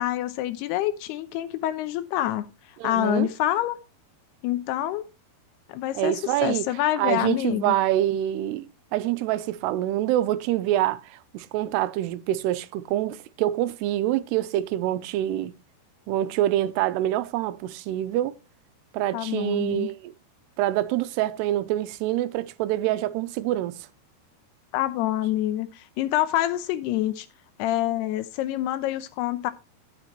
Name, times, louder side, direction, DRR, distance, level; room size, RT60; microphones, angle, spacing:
voice 1, 0.0-2.5 2.8-3.8 4.4-5.1 5.7-7.7 19.1-19.9 24.7-27.3 27.6-29.5, left 13 dB, 85° left, 2.8 m, -26 dB
voice 2, 2.8-3.3 5.9-6.7 7.0-15.5 16.1-18.4 18.9-20.1 20.6-23.8, right 13 dB, 90° right, 2.8 m, -26 dB
11.0 x 9.1 x 3.0 m
omnidirectional pair, 4.6 m